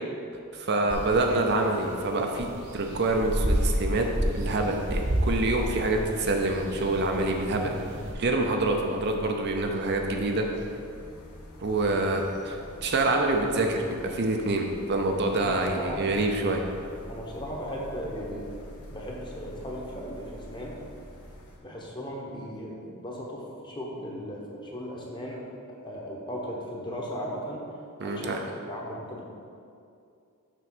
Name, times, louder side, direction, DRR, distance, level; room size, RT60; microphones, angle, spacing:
voice 1, 0.5-2.5 2.7-4.1 4.3-7.7 8.1-10.4 11.6-16.6 28.0-28.4, right 2 dB, 50° right, 2 dB, 0.6 m, -26 dB
sound 1, 0.9-8.1, equal, 80° right, 1.5 m, -31 dB
sound 2, 3.0-21.6, equal, 90° left, 1.1 m, -45 dB
voice 2, 15.4-16.0 17.1-18.5 18.9-20.7 21.6-25.5 25.8-27.6 28.0-29.2, equal, 20° left, -3 dB, 1.0 m, -37 dB
6.1 x 4.1 x 6.0 m, 2.5 s
head